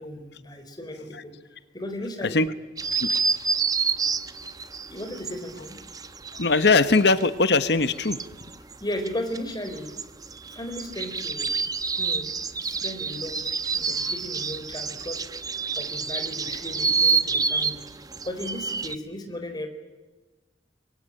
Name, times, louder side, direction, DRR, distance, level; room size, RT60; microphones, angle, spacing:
voice 1, 0.0-1.3 1.7-2.5 4.9-5.8 8.8-9.9 10.5-11.5 12.0-12.3 12.6-13.4 13.7-15.2 15.8-17.8 18.2-19.7, left 1 dB, 25° left, 6 dB, 4.4 m, -35 dB
sound 1, 2.8-7.3 7.6-18.9, right 5 dB, 20° right, 0.9 m, -28 dB
voice 2, 6.4-8.2, left 3 dB, 65° left, 12 dB, 1.2 m, -20 dB
26.0 x 23.5 x 9.0 m, 1.2 s
head